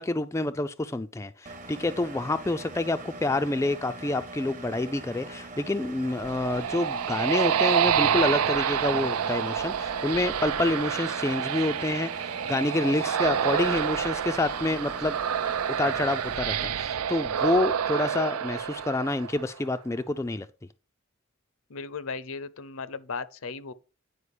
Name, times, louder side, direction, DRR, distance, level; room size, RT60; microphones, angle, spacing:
voice 1, 0.0-15.1 15.8-20.5, left 2 dB, 15° left, 0.3 m, -28 dB
Engine, 1.5-16.4, right 2 dB, 35° right, 1.1 m, -42 dB
sound 1, 6.1-19.6, right 8 dB, 90° right, 0.5 m, -28 dB
voice 2, 21.7-23.7, left 4 dB, 70° left, 0.6 m, -36 dB
9.7 x 5.0 x 4.9 m
head